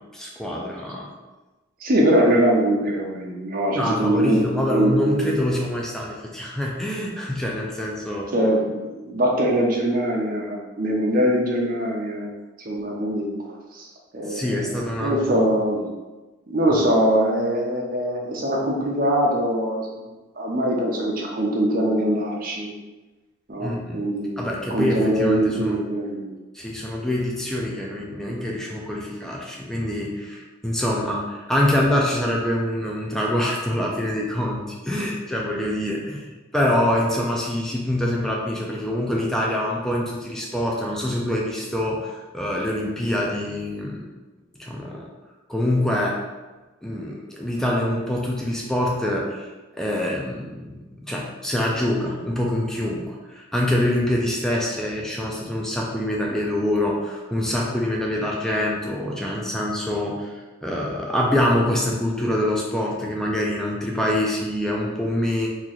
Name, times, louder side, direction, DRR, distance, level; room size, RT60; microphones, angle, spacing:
voice 1, 0.1-1.1 3.7-8.3 14.3-15.4 23.6-24.0 24.4-25.8 26.5-44.1 44.6-45.1 45.5-46.2 46.8-49.5 49.8-65.5, left 1 dB, 5° left, -3 dB, 0.4 m, -25 dB
voice 2, 1.8-5.4 8.3-12.3 12.6-13.3 13.7-13.9 14.1-14.7 15.0-15.8 16.5-20.1 20.3-22.7 23.5-26.3, right 1 dB, 45° right, -2 dB, 0.6 m, -22 dB
3.0 x 2.5 x 3.8 m, 1.2 s
head